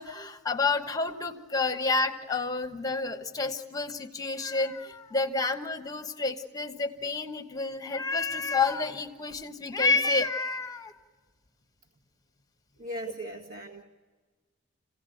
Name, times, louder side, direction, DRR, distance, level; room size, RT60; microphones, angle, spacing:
voice 1, 0.0-10.9, left 3 dB, 15° left, 8 dB, 1.1 m, -29 dB
voice 2, 12.8-13.8, equal, 35° right, -1 dB, 1.9 m, -38 dB
28.5 x 17.0 x 9.2 m, 1.4 s
head